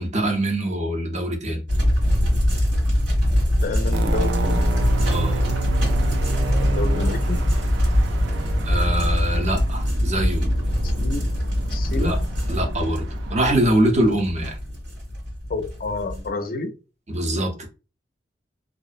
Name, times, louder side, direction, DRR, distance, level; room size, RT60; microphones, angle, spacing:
voice 1, 0.0-1.6 5.0-5.4 8.7-10.5 11.9-12.2 12.5-14.6 17.1-17.7, right 1 dB, 35° right, 0.6 m, -23 dB
sound 1, 1.7-16.3, equal, 70° right, 1.5 m, -22 dB
voice 2, 3.6-4.7 6.6-7.4 10.8-11.3 11.7-12.2 15.5-16.7, left 3 dB, 50° left, 0.4 m, -29 dB
sound 2, 3.9-13.3, right 4 dB, 90° right, 0.3 m, -32 dB
2.5 x 2.0 x 2.4 m
head